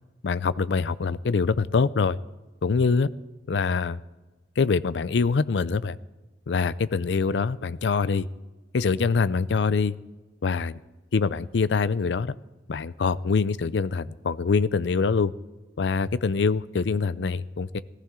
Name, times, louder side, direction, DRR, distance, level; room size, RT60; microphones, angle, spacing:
voice 1, 0.2-2.2 2.6-3.1 3.5-4.0 4.6-6.0 6.5-8.3 8.7-9.9 10.4-10.7 11.1-12.3 12.7-15.3 15.8-17.8, left 4 dB, 70° left, 17 dB, 0.5 m, -24 dB
16.5 x 14.5 x 3.8 m, 1.2 s
head